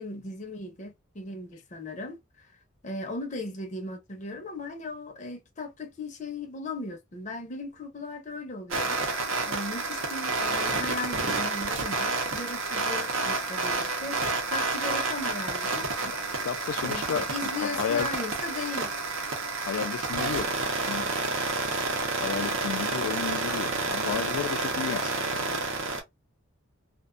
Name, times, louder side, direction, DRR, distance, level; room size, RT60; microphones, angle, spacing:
voice 1, 0.0-2.5 2.8-9.0 9.5-14.2 14.5-16.1 16.8-18.9, left 2 dB, 35° left, 0.5 m, -37 dB
sound 1, 8.7-26.0, right 3 dB, 75° right, 0.7 m, -29 dB
voice 2, 16.4-18.1 19.7-21.1 22.2-25.8, left 7 dB, 90° left, 0.3 m, -33 dB
2.4 x 2.2 x 2.4 m
head